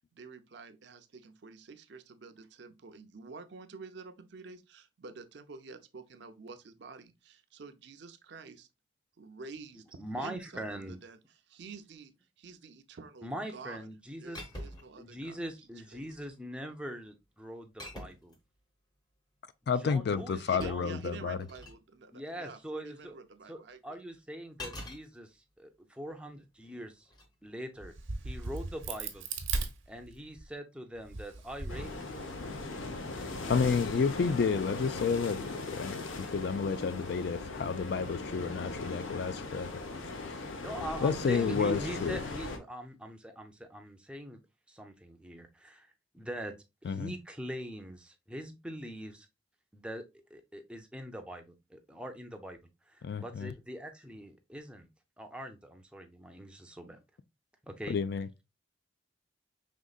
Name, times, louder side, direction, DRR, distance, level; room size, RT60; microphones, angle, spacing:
voice 1, 0.1-8.7 9.2-11.2 11.5-13.9 14.2-15.4 15.9-16.0 20.4-24.0, right 4 dB, 60° right, 0.5 m, -49 dB
voice 2, 10.0-11.0 13.2-14.4 15.0-18.4 19.8-21.0 22.1-23.2 23.5-27.1 27.4-27.9 28.2-29.2 29.9-32.0 40.6-44.4 44.7-46.5 46.8-49.3 49.7-52.6 52.9-54.9 55.2-57.0 57.6-58.0, equal, 5° right, 0.5 m, -42 dB
sound 1, 14.3-15.0 15.9-16.4 17.8-18.4 20.1-21.8 24.6-25.0 27.0-27.3, left 1 dB, 20° left, 0.8 m, -45 dB
voice 3, 19.7-21.4 33.5-39.7 40.1-40.5 41.0-42.2 46.8-47.1 53.0-53.5 57.9-58.3, left 5 dB, 55° left, 0.3 m, -31 dB
Crack, 27.8-30.4 31.0-32.6, right 3 dB, 80° right, 0.9 m, -38 dB
sound 2, 31.7-42.6, left 3 dB, 85° left, 0.8 m, -39 dB
5.1 x 3.6 x 2.3 m
head